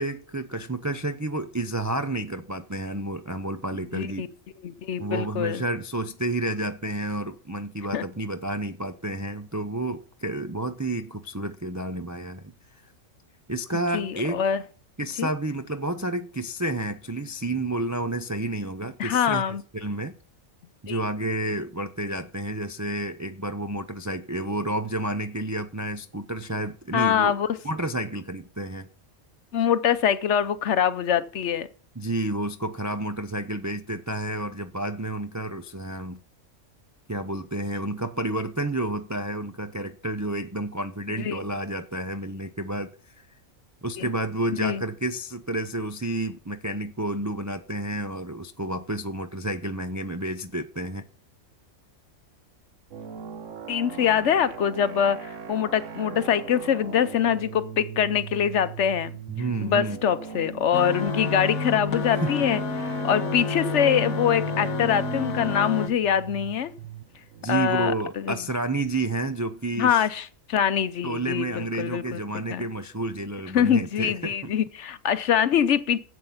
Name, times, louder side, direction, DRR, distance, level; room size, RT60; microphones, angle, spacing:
voice 1, 0.0-4.3 5.0-12.5 13.5-14.4 15.0-20.2 20.8-27.4 27.6-28.9 32.0-36.2 37.1-42.9 43.2-43.3 43.8-51.0 59.3-60.0 62.2-62.3 67.4-70.1 71.0-74.5, right 1 dB, 30° right, 0.3 m, -30 dB
voice 2, 3.9-4.3 4.6-5.6 7.9-8.0 13.9-14.6 15.2-15.3 19.0-19.6 20.9-21.0 26.9-27.5 29.5-31.7 41.2-41.4 44.0-44.1 44.5-44.8 53.7-59.2 59.6-66.7 67.5-67.9 68.2-68.4 69.8-72.2 72.5-72.6 73.5-76.0, left 8 dB, 60° left, 0.9 m, -24 dB
sound 1, 52.9-69.4, right 7 dB, 65° right, 1.2 m, -40 dB
sound 2, 60.7-65.9, left 3 dB, 80° left, 1.6 m, -29 dB
11.0 x 8.1 x 5.6 m
omnidirectional pair, 1.4 m